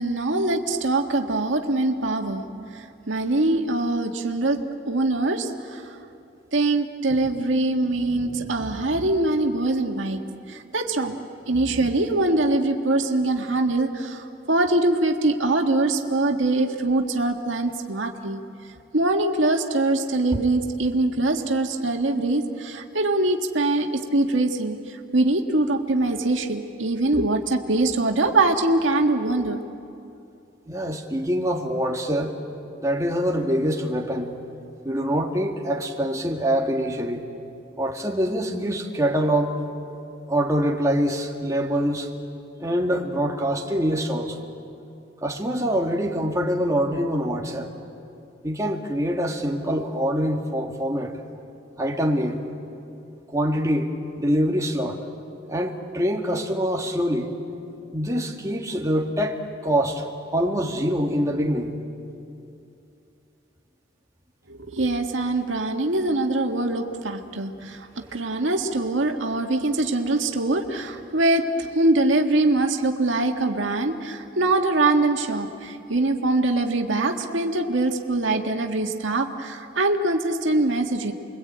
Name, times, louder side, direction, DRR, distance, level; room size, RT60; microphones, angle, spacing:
voice 1, 0.0-2.4 2.7-5.9 6.5-10.2 10.5-11.2 11.5-18.4 18.9-29.6 64.5-81.1, right 2 dB, 90° right, 4 dB, 1.8 m, -23 dB
voice 2, 30.7-32.4 32.8-34.4 34.8-37.3 37.8-39.6 40.3-42.1 42.6-44.4 45.2-47.7 48.4-51.2 51.8-52.4 53.3-55.0 55.5-57.3 57.9-60.0 60.3-61.8, equal, 15° right, 1 dB, 2.1 m, -24 dB
29.5 x 23.0 x 8.8 m, 2.6 s
head